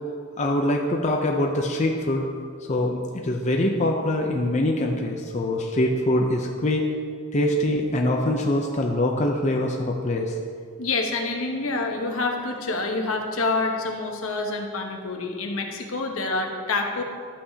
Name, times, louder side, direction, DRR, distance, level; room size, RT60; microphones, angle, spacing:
voice 1, 0.4-2.2 2.7-6.9 7.3-10.3, left 1 dB, 35° left, 1 dB, 0.6 m, -24 dB
voice 2, 10.8-17.0, left 3 dB, 75° left, 2 dB, 1.1 m, -27 dB
12.0 x 8.5 x 2.8 m, 2.2 s
head